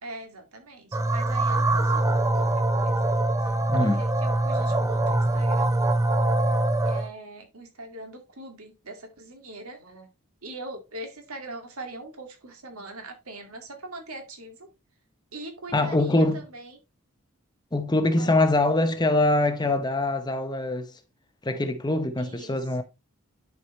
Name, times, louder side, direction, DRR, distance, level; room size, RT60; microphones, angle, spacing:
voice 1, 0.0-3.0 3.4-5.8 6.8-10.1 10.4-14.7 15.3-16.8 18.2-18.5 22.2-22.7, right 2 dB, 80° right, 2.1 m, -41 dB
sound 1, 0.9-7.1, right 2 dB, 15° right, 0.5 m, -23 dB
voice 2, 3.7-4.0 15.7-16.4 17.7-20.9 21.4-22.8, left 2 dB, 20° left, 0.7 m, -23 dB
10.5 x 4.7 x 3.1 m
head